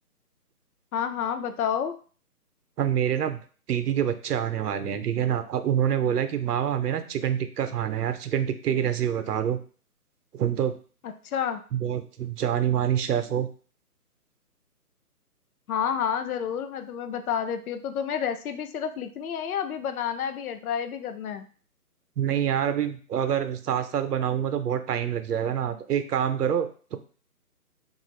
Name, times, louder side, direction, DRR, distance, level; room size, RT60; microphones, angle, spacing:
voice 1, 0.9-2.0 11.3-11.6 15.7-21.5, left 8 dB, 70° left, 9 dB, 0.5 m, -29 dB
voice 2, 2.8-3.4 3.7-9.6 10.3-10.7 11.7-13.5 22.2-27.0, right 9 dB, 85° right, 9 dB, 0.6 m, -26 dB
2.8 x 2.4 x 3.0 m, 0.41 s
hypercardioid pair, 170°, 46 cm